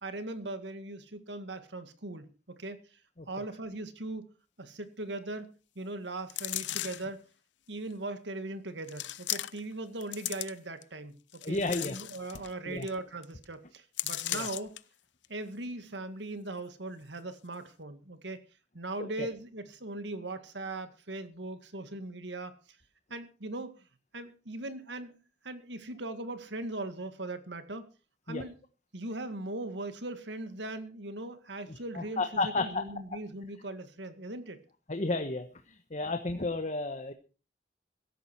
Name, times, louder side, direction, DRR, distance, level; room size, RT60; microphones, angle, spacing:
voice 1, 0.0-3.0 3.3-4.3 4.6-7.2 7.7-14.7 15.3-18.4 18.7-22.5 23.1-23.7 24.1-25.1 25.4-27.9 28.3-28.6 28.9-34.6, right 2 dB, 80° right, 10 dB, 2.0 m, -39 dB
sound 1, 6.3-7.1 7.9-8.0 8.9-9.7 10.0-10.8 11.3-12.5 12.8-12.9 13.2-13.4 14.0-14.8 15.2-15.3, left 14 dB, 85° left, 0.8 m, -36 dB
voice 2, 11.4-12.0 12.7-12.9 14.3-14.5 19.0-19.3 28.3-28.4 31.7-32.8 34.9-37.1, left 3 dB, 40° left, 7 dB, 1.3 m, -32 dB
16.5 x 13.0 x 4.6 m, 0.35 s
head